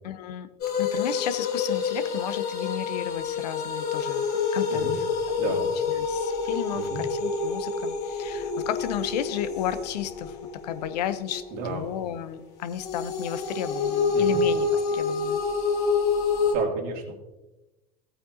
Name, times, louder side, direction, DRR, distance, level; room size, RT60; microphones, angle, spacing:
voice 1, 0.0-0.5 0.8-4.3 4.5-5.0 5.6-10.4 10.6-15.4, left 11 dB, 75° left, 12 dB, 0.8 m, -33 dB
sound 1, 0.6-12.1 12.8-16.6, left 5 dB, 55° left, 3.0 m, -28 dB
voice 2, 5.4-5.7 6.7-7.0 11.5-11.8 14.1-14.4 16.5-17.1, right 5 dB, 70° right, 0 dB, 2.6 m, -32 dB
15.5 x 8.8 x 2.7 m, 1.0 s
hypercardioid pair, 80°, 21 cm